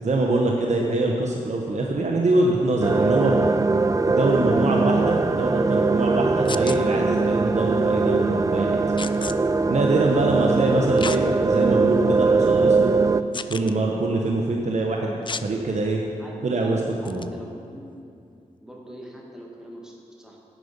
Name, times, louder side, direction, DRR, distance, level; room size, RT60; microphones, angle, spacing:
voice 1, 0.0-3.4 3.7-8.8 9.7-13.0 13.5-16.0 16.4-16.8 17.0-17.2, right 2 dB, 55° right, 0 dB, 1.1 m, -24 dB
sound 1, 2.8-13.2, right 3 dB, 25° right, 0.4 m, -21 dB
sound 2, 6.5-6.8 9.0-9.3 11.0-11.2 11.8-11.9 13.3-13.7 15.3-15.5 17.1-17.3, left 4 dB, 35° left, 0.5 m, -32 dB
voice 2, 16.2-16.7 17.0-17.9 18.6-20.4, equal, 5° right, -2 dB, 2.2 m, -42 dB
11.5 x 8.1 x 5.3 m, 2.5 s
cardioid pair, 45°, 14 cm